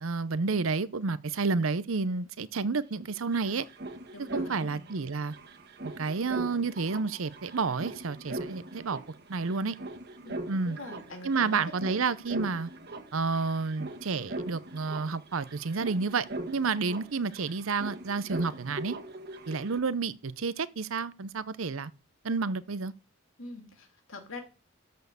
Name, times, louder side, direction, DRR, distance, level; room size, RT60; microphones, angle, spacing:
voice 1, 0.0-3.7 4.3-5.3 6.0-9.0 9.3-9.8 10.5-10.8 11.2-12.7 13.1-18.9 19.5-21.9 22.2-22.9, right 4 dB, 75° right, 0.7 m, -30 dB
sound 1, 3.0-19.8, right 1 dB, 50° right, 1.7 m, -41 dB
voice 2, 4.1-4.8 10.2-11.9 23.4-24.4, left 2 dB, 70° left, 2.6 m, -44 dB
13.0 x 4.5 x 6.8 m
head